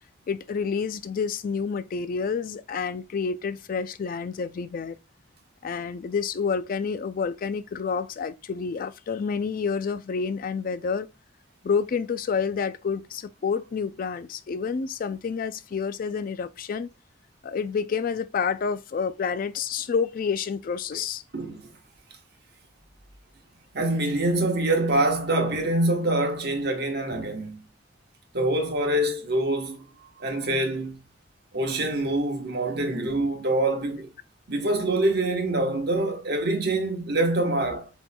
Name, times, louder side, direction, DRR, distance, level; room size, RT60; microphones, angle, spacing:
voice 1, 0.3-5.0 5.6-11.1 11.6-16.9 17.4-21.2, left 5 dB, 50° left, 0.4 m, -29 dB
voice 2, 21.3-21.7 23.7-27.6 28.3-29.9 30.2-31.0 31.5-34.1 34.5-37.9, right 1 dB, 60° right, 1.2 m, -25 dB
7.8 x 3.1 x 2.2 m
head